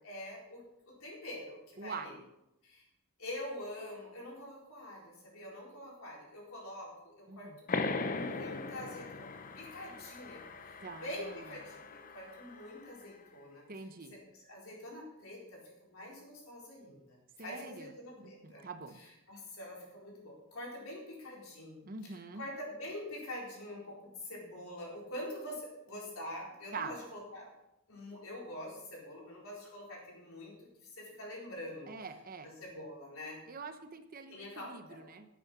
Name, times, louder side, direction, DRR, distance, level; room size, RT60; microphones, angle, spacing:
voice 1, 0.0-2.2 2.6-2.9 3.2-7.5 8.0-13.7 14.1-18.7 19.0-27.5 27.9-31.9 32.4-33.4 34.3-35.1, left 1 dB, 65° left, -2 dB, 4.1 m, -45 dB
voice 2, 1.8-2.2 7.3-7.6 10.8-11.4 13.7-14.1 17.4-17.9 18.2-19.0 21.8-22.4 26.7-26.9 31.9-32.5 33.5-35.3, right 4 dB, 40° right, 8 dB, 0.8 m, -44 dB
sound 1, 7.7-12.9, left 3 dB, 40° left, 0.7 m, -39 dB
10.5 x 8.4 x 6.1 m, 0.87 s
head